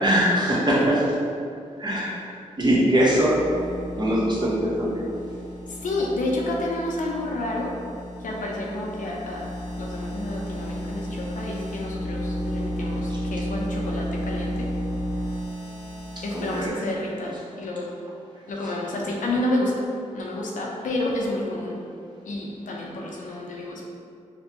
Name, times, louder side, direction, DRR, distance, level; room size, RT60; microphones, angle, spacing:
voice 1, 0.0-1.0 1.8-2.1 2.6-3.4 4.0-5.0 13.1-13.2 16.3-16.7, equal, 35° right, -6 dB, 1.0 m, -21 dB
sound 1, 2.8-16.7, equal, 30° left, 0.8 m, -33 dB
voice 2, 5.7-7.7 8.2-9.5 9.8-14.7 16.2-17.9 18.5-19.7 20.1-21.8 22.3-23.8, left 1 dB, 80° left, -2 dB, 0.6 m, -29 dB
4.4 x 2.2 x 2.8 m, 2.4 s
cardioid pair, 60°, 13 cm